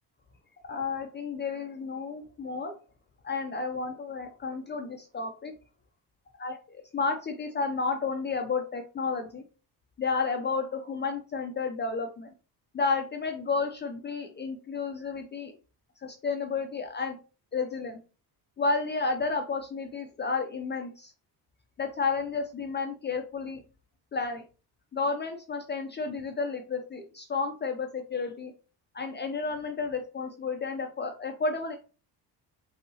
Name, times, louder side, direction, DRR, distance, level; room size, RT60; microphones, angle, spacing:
voice 1, 0.6-2.8 3.2-5.5 6.4-6.6 6.9-9.4 10.0-12.3 12.7-15.6 16.0-17.2 17.5-18.0 18.6-21.1 21.8-23.6 24.1-24.4 24.9-28.5 28.9-31.8, left 4 dB, 30° left, 5 dB, 0.4 m, -31 dB
5.5 x 2.7 x 2.8 m, 0.34 s
cardioid pair, 170°, 41 cm